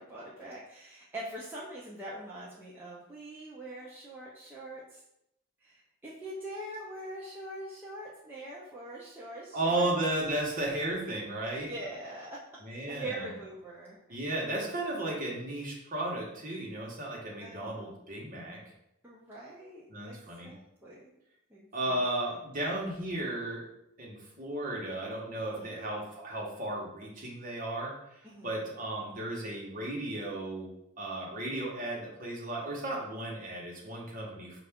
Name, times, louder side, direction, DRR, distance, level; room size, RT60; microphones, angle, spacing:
voice 1, 0.0-5.0 5.6-9.9 11.6-12.3 12.7-14.3 17.4-18.0 19.0-21.1 21.5-22.0 25.4-25.8 28.2-28.6, right 1 dB, 10° right, -7 dB, 0.5 m, -43 dB
voice 2, 9.5-11.7 12.6-13.2 14.1-18.6 19.9-20.5 21.7-23.6 24.0-27.9 28.4-30.7 31.0-34.6, right 1 dB, 40° right, -3 dB, 1.1 m, -34 dB
5.6 x 2.5 x 3.5 m, 0.82 s
head